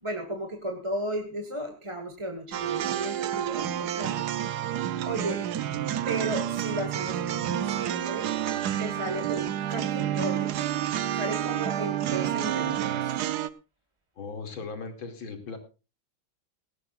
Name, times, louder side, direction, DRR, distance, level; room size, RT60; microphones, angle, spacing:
voice 1, 0.0-4.2 5.0-5.4 6.1-8.3 8.8-10.5 11.1-13.3, right 1 dB, 15° right, 5 dB, 1.3 m, -34 dB
sound 1, 2.5-13.5, right 11 dB, 60° right, 1.1 m, -29 dB
voice 2, 5.0-5.3 14.2-15.6, left 4 dB, 70° left, 7 dB, 3.3 m, -38 dB
18.0 x 16.5 x 2.4 m, 0.32 s
omnidirectional pair, 2.3 m